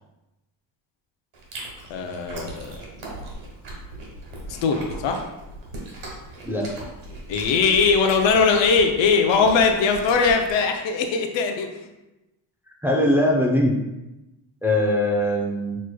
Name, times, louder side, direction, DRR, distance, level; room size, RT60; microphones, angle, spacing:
Chewing mastication, 1.3-10.6, right 1 dB, 70° right, 1.5 m, -39 dB
voice 1, 1.9-2.8 4.5-5.2 7.3-11.8, left 5 dB, 70° left, 4 dB, 0.7 m, -20 dB
voice 2, 12.8-13.7 14.6-15.8, left 1 dB, 5° right, -2 dB, 0.6 m, -21 dB
6.0 x 3.1 x 2.2 m, 0.98 s
cardioid pair, 100°, 47 cm